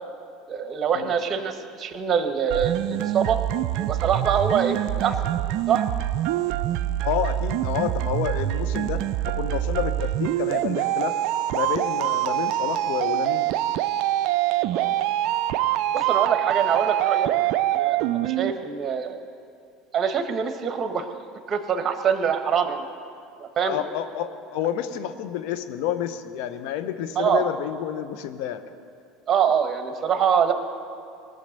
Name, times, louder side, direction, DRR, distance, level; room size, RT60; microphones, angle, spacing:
voice 1, 0.5-3.4 3.8-5.1 5.7-5.9 14.7-14.9 15.9-19.2 19.9-21.1 21.5-22.9 23.4-23.8 27.2-27.5 29.3-30.5, right 7 dB, 40° right, 7 dB, 1.3 m, -24 dB
sound 1, 2.5-18.5, right 13 dB, 65° right, 0.4 m, -25 dB
voice 2, 7.0-11.2 11.5-13.5 18.4-18.6 23.6-28.6, left 10 dB, 70° left, 9 dB, 0.8 m, -29 dB
19.0 x 6.6 x 6.7 m, 2.4 s
hypercardioid pair, 80°, 0 cm